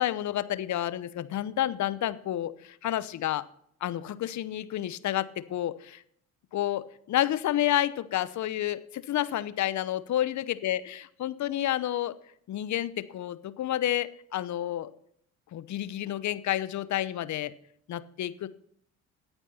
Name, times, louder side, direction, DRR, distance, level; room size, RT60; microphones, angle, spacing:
voice 1, 0.0-3.4 3.8-6.0 6.5-12.1 12.5-14.9 15.5-17.5 17.9-18.5, left 12 dB, 45° left, 15 dB, 0.8 m, -30 dB
18.0 x 9.0 x 2.8 m, 0.66 s
hypercardioid pair, 55°, 42 cm